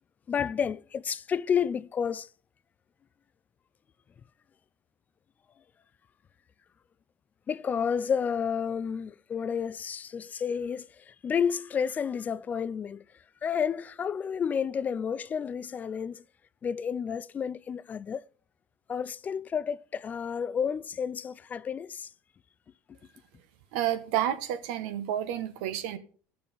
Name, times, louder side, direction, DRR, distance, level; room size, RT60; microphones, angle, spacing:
voice 1, 0.3-2.3 7.5-13.0 13.4-16.2 16.6-18.2 18.9-22.1, left 7 dB, 30° left, 0.4 m, -31 dB
voice 2, 23.7-26.0, right 11 dB, 85° right, 1.3 m, -30 dB
12.5 x 6.8 x 5.2 m
cardioid pair, 130°, 6 cm